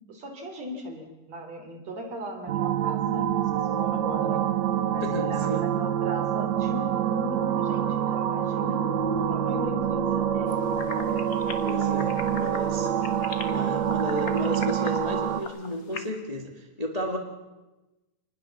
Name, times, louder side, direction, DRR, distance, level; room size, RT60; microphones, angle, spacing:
voice 1, 0.0-4.4 4.9-8.8 9.1-11.0, right 1 dB, 45° right, 4 dB, 4.5 m, -38 dB
sound 1, 2.5-15.4, right 9 dB, 60° right, 2.0 m, -26 dB
voice 2, 5.0-5.7 11.6-12.9 13.5-17.2, equal, 20° left, 3 dB, 1.1 m, -33 dB
Bats at Parkland Walk, 10.5-16.1, left 5 dB, 70° left, 0.8 m, -40 dB
28.0 x 20.5 x 7.2 m, 1.1 s
omnidirectional pair, 4.3 m